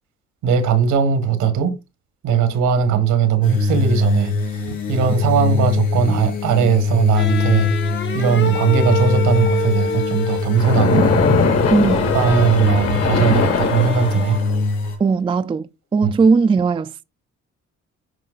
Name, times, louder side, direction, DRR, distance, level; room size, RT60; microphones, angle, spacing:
voice 1, 0.4-1.8 2.2-4.6 4.9-7.7 8.1-11.1 12.1-14.4 16.0-16.1, right 7 dB, 90° right, 1.5 m, -19 dB
sound 1, 3.4-15.0, left 3 dB, 90° left, 4.5 m, -22 dB
sound 2, 7.1-14.6, left 3 dB, 40° left, 0.8 m, -27 dB
Splash splatter, 10.6-14.6, left 4 dB, 55° left, 1.7 m, -20 dB
voice 2, 15.0-17.0, right 4 dB, 20° right, 0.3 m, -18 dB
12.0 x 4.7 x 2.4 m
cardioid pair, 90°, 30 cm